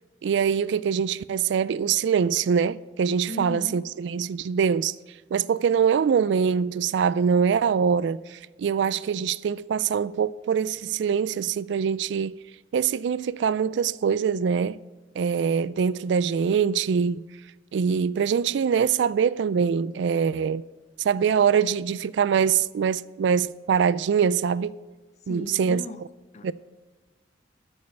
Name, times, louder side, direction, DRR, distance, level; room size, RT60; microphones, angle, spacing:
voice 1, 0.2-4.9 5.3-12.4 12.7-14.8 15.2-17.2 17.7-20.6 21.0-24.8 25.3-25.8 26.4-26.5, right 7 dB, 65° right, 0.3 m, -23 dB
voice 2, 3.3-3.8 25.3-26.0 26.3-26.5, left 2 dB, 35° left, 0.5 m, -37 dB
13.5 x 5.4 x 7.0 m
head